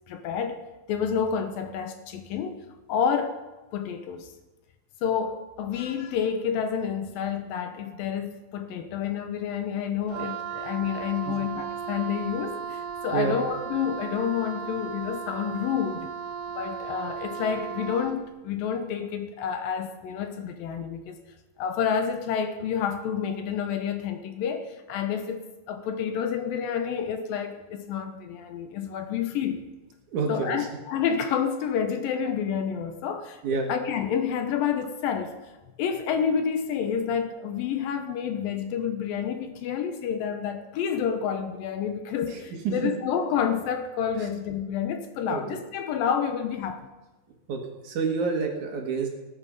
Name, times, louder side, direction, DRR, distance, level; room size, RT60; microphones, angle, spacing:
voice 1, 0.1-0.6 0.9-2.6 2.9-3.4 3.7-4.3 5.0-16.1 16.6-21.2 21.6-29.7 30.3-35.3 35.8-46.8, left 7 dB, 75° left, 7 dB, 2.5 m, -29 dB
Wind instrument woodwind instrument, 10.1-18.3, right 7 dB, 85° right, 1.9 m, -36 dB
voice 2, 30.1-30.7 33.4-33.7 42.3-42.4 42.8-42.9 44.2-44.3 45.3-45.4 47.5-49.1, right 5 dB, 60° right, 2 dB, 2.9 m, -28 dB
19.0 x 9.1 x 5.4 m, 1.1 s
omnidirectional pair, 4.4 m